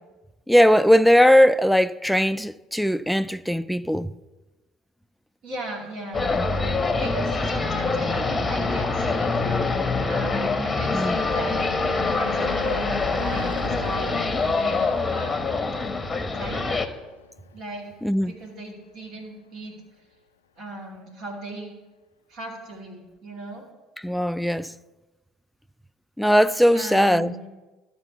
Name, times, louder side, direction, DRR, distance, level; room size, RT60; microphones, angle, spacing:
voice 1, 0.5-4.1 6.3-6.4 10.9-11.2 18.0-18.3 24.0-24.7 26.2-27.3, equal, ahead, 0.4 m, -19 dB
voice 2, 5.4-9.4 10.0-11.6 12.2-15.5 16.3-16.9 17.5-17.9 18.3-19.7 20.6-21.7 22.3-23.7 26.7-27.5, right 1 dB, 55° right, 2.5 m, -37 dB
sound 1, 6.1-16.9, left 3 dB, 20° left, 0.9 m, -25 dB
Car passing by / Truck / Engine, 10.0-18.7, left 7 dB, 85° left, 0.3 m, -42 dB
12.5 x 4.3 x 7.0 m
hypercardioid pair, 60°, 0 cm